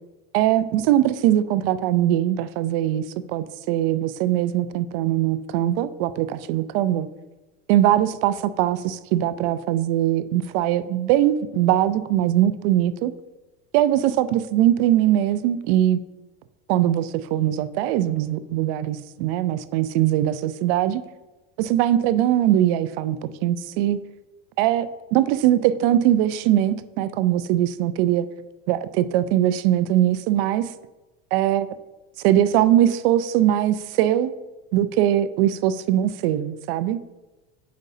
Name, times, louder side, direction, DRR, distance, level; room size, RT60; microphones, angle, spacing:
voice 1, 0.3-7.1 7.7-13.1 13.7-16.0 16.7-21.0 21.6-24.0 24.6-28.3 28.7-30.7 31.3-31.7 32.2-34.3 34.7-37.0, right 12 dB, 75° right, 14 dB, 0.5 m, -21 dB
8.1 x 5.2 x 2.7 m, 1.1 s
supercardioid pair, 115°, 30 cm